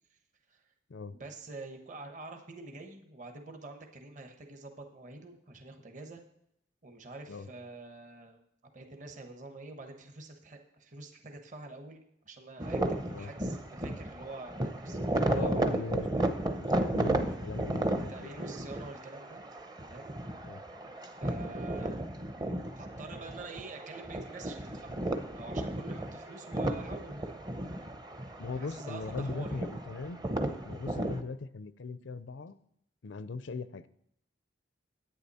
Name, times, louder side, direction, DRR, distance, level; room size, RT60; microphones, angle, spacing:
voice 1, 1.1-6.2 6.8-8.4 8.7-15.8 17.9-19.4 19.8-20.1 21.0-22.2 22.8-25.0 25.4-27.4 28.6-29.6, right 3 dB, 45° right, 4 dB, 1.2 m, -47 dB
sound 1, 12.6-31.2, right 1 dB, 20° right, 0.7 m, -34 dB
voice 2, 15.3-16.1 16.6-18.4 20.4-20.6 28.4-30.2 30.6-32.6 33.0-33.9, left 3 dB, 80° left, 14 dB, 0.6 m, -39 dB
10.5 x 8.9 x 4.2 m, 0.73 s
head